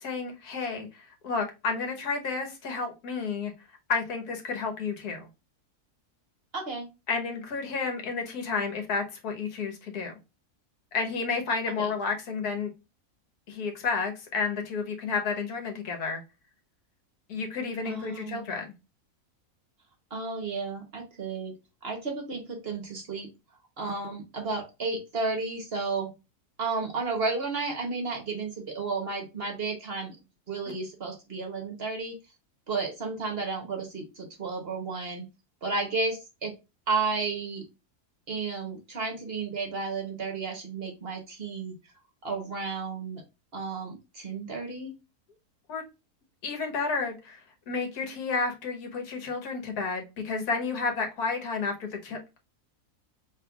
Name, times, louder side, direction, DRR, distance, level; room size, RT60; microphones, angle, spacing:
voice 1, 0.0-3.5 3.9-5.3 7.1-10.1 10.9-12.7 13.5-16.2 17.3-18.6 45.7-45.8 46.4-47.4 47.7-52.2, left 4 dB, 80° left, 1.6 m, -31 dB
voice 2, 6.5-6.9 11.7-11.9 17.8-18.6 20.1-21.6 21.8-23.3 23.8-26.1 26.6-30.2 30.5-32.2 32.7-35.3 35.6-36.5 36.9-37.6 38.3-41.7 42.2-43.2 43.5-44.9, right 4 dB, 45° right, 1.0 m, -32 dB
5.3 x 3.3 x 2.3 m
omnidirectional pair, 1.6 m